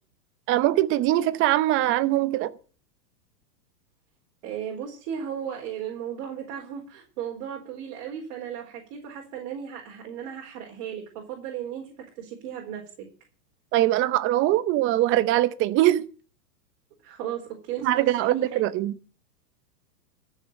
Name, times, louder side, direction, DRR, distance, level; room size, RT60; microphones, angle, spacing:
voice 1, 0.5-2.5 13.7-16.1 17.8-18.9, right 14 dB, 25° right, 0.8 m, -22 dB
voice 2, 4.4-12.8 17.0-18.7, right 9 dB, 45° right, 4.3 m, -36 dB
14.0 x 6.6 x 8.8 m
hypercardioid pair, 135°, 50 cm